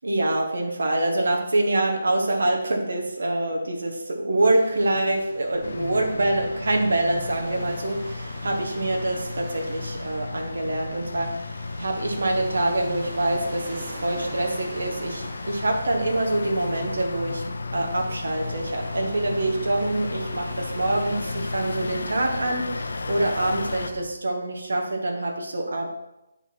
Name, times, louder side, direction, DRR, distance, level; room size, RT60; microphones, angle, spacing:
voice 1, 0.0-11.4 11.8-17.4 17.7-20.4 20.8-25.9, right 1 dB, 75° right, 1 dB, 1.6 m, -25 dB
sound 1, 4.5-24.0, right 2 dB, 35° right, 1.4 m, -42 dB
sound 2, 5.6-23.9, left 3 dB, 65° left, 0.6 m, -34 dB
9.0 x 4.0 x 6.1 m, 0.91 s
hypercardioid pair, 180°, 0 cm